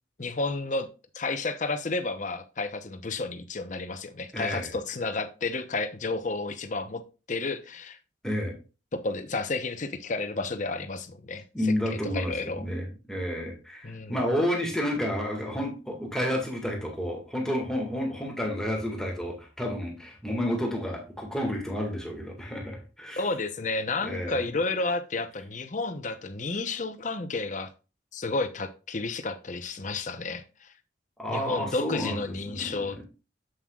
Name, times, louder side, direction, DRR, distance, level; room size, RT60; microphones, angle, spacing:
voice 1, 0.2-0.9 1.1-7.0 7.3-8.0 8.9-12.6 13.8-14.2 23.2-27.7 28.1-30.7 31.3-33.0, left 3 dB, 45° left, 0.8 m, -31 dB
voice 2, 4.3-4.7 8.2-8.6 11.5-23.2 24.0-24.5 31.2-32.9, equal, 5° left, 1.8 m, -30 dB
7.9 x 7.4 x 2.4 m
head